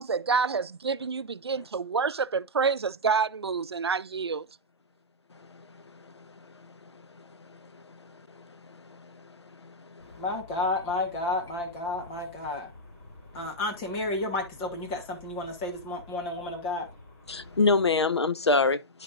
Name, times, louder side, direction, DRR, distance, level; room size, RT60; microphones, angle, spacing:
voice 1, 0.0-4.5, right 5 dB, 70° right, 0.6 m, -28 dB
voice 2, 8.4-9.2 9.6-10.2 17.3-19.0, left 3 dB, 80° left, 1.1 m, -26 dB
sound 1, 10.0-17.9, left 2 dB, 35° left, 4.0 m, -50 dB
voice 3, 10.2-12.7 13.3-16.9, left 2 dB, 10° left, 1.3 m, -31 dB
10.5 x 6.3 x 2.6 m
figure-of-eight pair, 170°, 14 cm